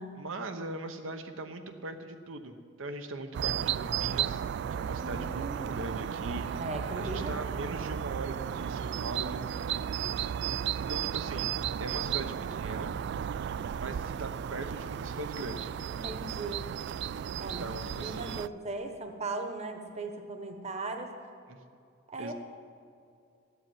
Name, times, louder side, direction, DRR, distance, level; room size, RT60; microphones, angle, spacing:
voice 1, 0.1-4.4 4.7-6.5 6.9-9.4 10.9-11.5 11.8-12.9 13.8-15.7 17.6-18.5 21.5-21.6 22.2-22.3, right 2 dB, 80° right, 7 dB, 1.0 m, -40 dB
sound 1, 3.3-18.5, right 9 dB, 60° right, 0.3 m, -34 dB
voice 2, 4.8-5.8 6.5-7.3 11.9-12.0 15.9-16.7 17.4-17.7 18.0-21.1 22.1-22.3, right 2 dB, 35° right, 6 dB, 1.2 m, -38 dB
13.5 x 8.3 x 9.2 m, 2.5 s
head